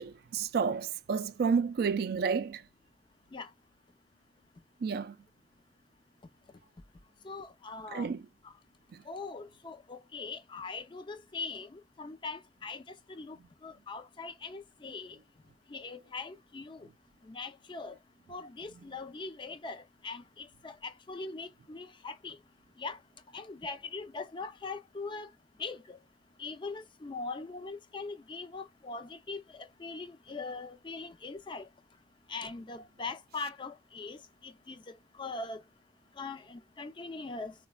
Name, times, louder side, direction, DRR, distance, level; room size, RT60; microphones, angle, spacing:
voice 1, 0.0-2.6 4.8-5.2 7.9-8.2 8.9-9.0, right 5 dB, 60° right, 0.3 m, -30 dB
voice 2, 7.2-8.1 8.4-8.5 9.1-12.8 13.1-13.4 13.6-15.2 15.7-16.9 17.2-17.9 18.3-22.4 22.8-23.0 23.3-25.3 25.6-26.0 26.4-31.7 32.3-35.6 36.2-37.5, left 4 dB, 25° left, 0.4 m, -41 dB
4.0 x 2.2 x 2.2 m
head